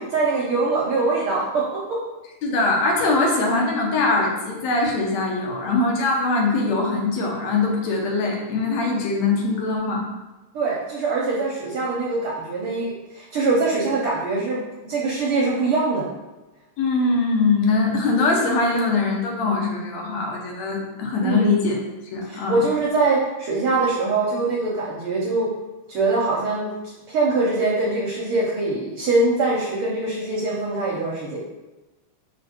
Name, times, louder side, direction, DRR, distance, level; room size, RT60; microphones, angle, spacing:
voice 1, 0.0-2.0 10.5-14.6 14.9-16.0 21.2-21.5 22.3-25.5 25.9-26.7 27.1-31.4, right 3 dB, 70° right, -4 dB, 1.3 m, -23 dB
voice 2, 2.4-10.0 16.8-21.8 22.1-22.6, left 3 dB, 70° left, -1 dB, 2.2 m, -22 dB
5.3 x 4.7 x 4.4 m, 1.1 s
omnidirectional pair, 3.3 m